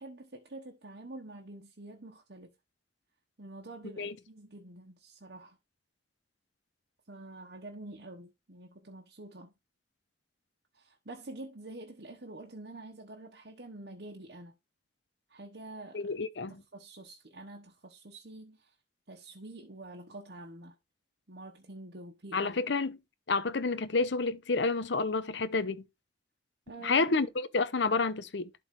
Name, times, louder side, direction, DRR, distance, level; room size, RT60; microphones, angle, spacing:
voice 1, 0.0-2.5 3.4-5.6 7.1-9.5 10.7-14.5 15.3-16.1 16.5-18.7 19.1-20.8 21.3-22.5 26.7-27.1, right 2 dB, 65° right, 1.2 m, -47 dB
voice 2, 15.9-16.6 22.3-23.0 23.3-25.8 26.8-28.5, left 3 dB, 80° left, 0.8 m, -29 dB
11.5 x 3.9 x 3.7 m
head